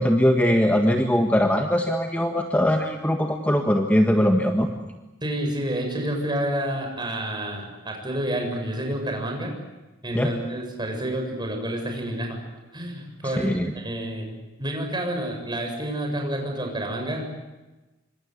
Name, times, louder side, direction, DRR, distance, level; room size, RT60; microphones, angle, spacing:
voice 1, 0.0-4.7 10.1-10.3 13.4-13.7, equal, 10° left, 3 dB, 1.7 m, -21 dB
voice 2, 5.2-9.5 10.0-12.4 12.7-17.5, right 1 dB, 25° right, 2 dB, 7.6 m, -29 dB
27.5 x 25.5 x 8.2 m, 1.1 s
head